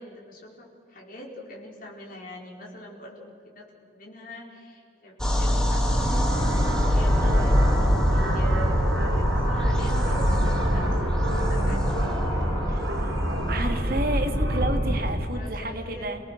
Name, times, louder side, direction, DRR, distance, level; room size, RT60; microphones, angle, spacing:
voice 1, 0.0-6.2 6.9-8.8 9.1-11.9 15.3-16.0, equal, 50° left, -2 dB, 4.7 m, -42 dB
sound 1, 5.2-13.8, left 1 dB, 5° left, 2.0 m, -28 dB
sound 2, 5.9-15.1, equal, 70° right, 4.5 m, -24 dB
voice 2, 12.7-13.2 13.5-16.2, right 1 dB, 55° right, 5 dB, 2.2 m, -31 dB
28.5 x 18.5 x 6.5 m, 2.5 s
head